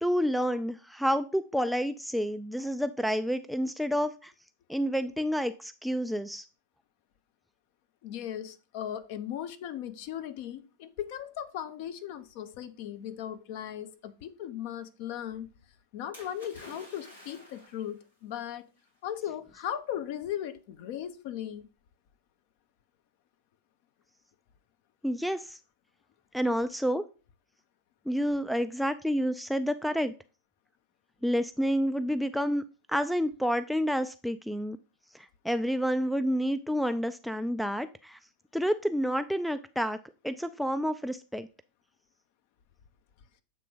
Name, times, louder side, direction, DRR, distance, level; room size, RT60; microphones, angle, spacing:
voice 1, 0.0-4.3 4.7-6.4 25.0-25.6 26.3-27.0 28.1-30.1 31.2-32.6 32.9-34.8 35.1-38.2 38.5-40.0 40.2-41.5, equal, ahead, 0.3 m, -29 dB
voice 2, 8.0-15.5 15.9-18.7 19.0-21.7, left 10 dB, 45° left, 0.7 m, -37 dB
Splash splatter, 16.1-17.9 18.9-19.0, left 2 dB, 80° left, 2.8 m, -49 dB
7.6 x 3.3 x 5.0 m
figure-of-eight pair, 90°, 0 cm